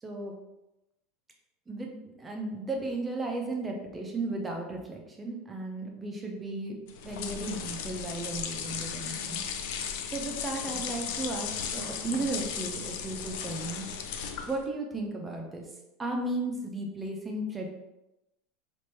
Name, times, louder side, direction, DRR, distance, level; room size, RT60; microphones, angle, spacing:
voice 1, 0.0-0.3 1.7-6.8 7.0-9.4 10.1-13.9 14.5-15.6 16.0-17.7, right 2 dB, 10° right, 1 dB, 0.6 m, -35 dB
sound 1, 6.9-14.7, left 7 dB, 65° left, 0.4 m, -36 dB
3.1 x 2.6 x 4.4 m, 0.95 s
supercardioid pair, 170°, 0 cm